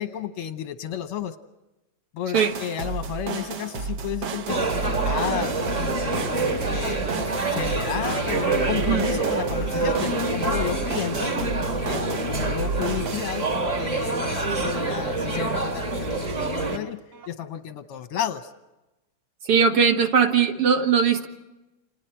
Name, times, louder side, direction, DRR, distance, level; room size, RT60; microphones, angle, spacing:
voice 1, 0.0-1.3 2.1-5.6 6.3-11.4 11.9-17.0 17.3-18.5, left 9 dB, 65° left, 9 dB, 1.5 m, -32 dB
sound 1, 2.3-15.4 17.1-17.3, right 5 dB, 75° right, 0.9 m, -32 dB
sound 2, 4.5-16.8, right 2 dB, 25° right, 2.4 m, -26 dB
voice 2, 19.4-21.3, right 6 dB, 60° right, 5 dB, 2.1 m, -20 dB
30.0 x 27.0 x 4.5 m, 1.0 s
omnidirectional pair, 3.4 m